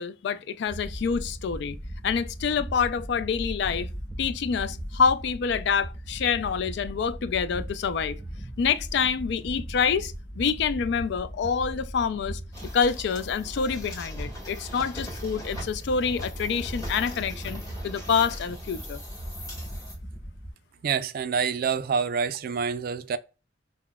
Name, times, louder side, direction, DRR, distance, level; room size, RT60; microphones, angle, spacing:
voice 1, 0.0-1.8 2.0-3.9 4.2-8.2 8.6-12.4 12.7-19.0, left 6 dB, 65° left, 0.3 m, -27 dB
sound 1, 0.7-20.5, equal, 5° right, 0.8 m, -38 dB
sound 2, 12.5-19.9, equal, 20° left, 1.6 m, -41 dB
voice 2, 20.8-23.2, right 6 dB, 55° right, 0.3 m, -27 dB
5.9 x 2.1 x 2.2 m
head